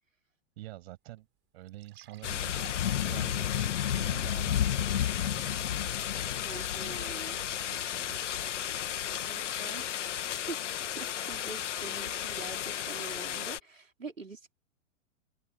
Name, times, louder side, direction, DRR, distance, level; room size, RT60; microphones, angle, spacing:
voice 1, 0.6-1.3 1.5-6.0 6.9-8.2, right 16 dB, 55° right, 7.5 m, -48 dB
sound 1, 0.8-0.9 1.2-1.3 1.7-5.3 5.7-5.8 6.4-6.5, right 13 dB, 30° right, 6.3 m, -58 dB
sound 2, 2.2-13.6, left 10 dB, 70° left, 1.5 m, -32 dB
voice 2, 6.3-7.4 9.2-9.8 10.5-10.6 11.0-14.5, right 3 dB, 90° right, 3.3 m, -44 dB
open air
figure-of-eight pair, 100°, 38 cm